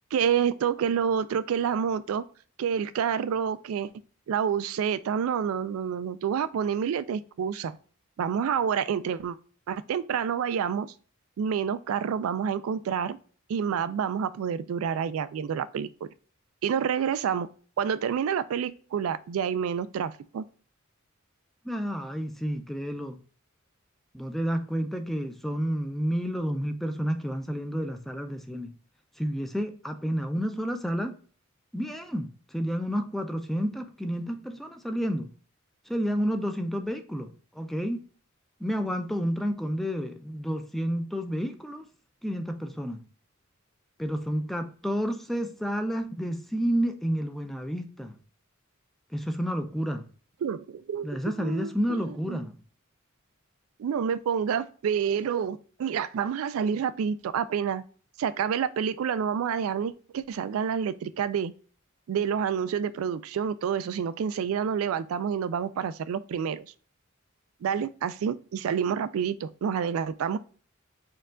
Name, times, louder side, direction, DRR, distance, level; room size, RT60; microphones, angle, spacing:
voice 1, 0.1-2.2 2.6-3.9 4.3-7.8 8.2-9.4 9.7-10.9 11.4-13.2 13.5-16.1 16.6-17.5 17.8-20.4 50.4-52.4 53.8-57.8 58.2-61.5 62.1-66.7 67.6-70.4, right 7 dB, 80° right, 0.3 m, -28 dB
voice 2, 21.7-23.2 24.1-28.7 29.2-31.1 31.7-32.3 32.5-35.3 35.9-37.3 37.6-38.0 38.6-41.8 42.2-43.0 44.0-48.2 49.1-50.0 51.0-52.6, equal, ahead, 0.4 m, -30 dB
4.4 x 2.4 x 3.6 m
head